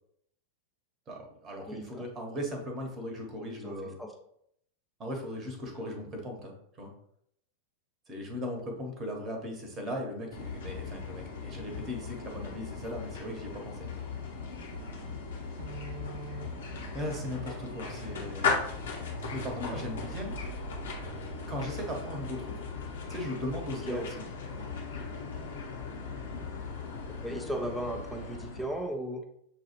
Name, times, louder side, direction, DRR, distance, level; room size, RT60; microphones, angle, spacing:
voice 1, 1.1-4.0 5.0-6.9 8.1-13.9 16.9-18.7 19.2-20.3 21.5-22.5 23.1-24.1, left 1 dB, 25° right, 2 dB, 1.1 m, -38 dB
voice 2, 1.7-2.0 3.6-3.7 4.0-4.1 23.9-24.1 27.1-29.2, right 1 dB, ahead, 3 dB, 0.5 m, -36 dB
sound 1, 10.3-28.9, left 5 dB, 65° left, 0.9 m, -38 dB
sound 2, 14.7-21.9, right 6 dB, 55° right, 0.4 m, -45 dB
6.6 x 2.4 x 3.1 m, 0.71 s
figure-of-eight pair, 90°, 0 cm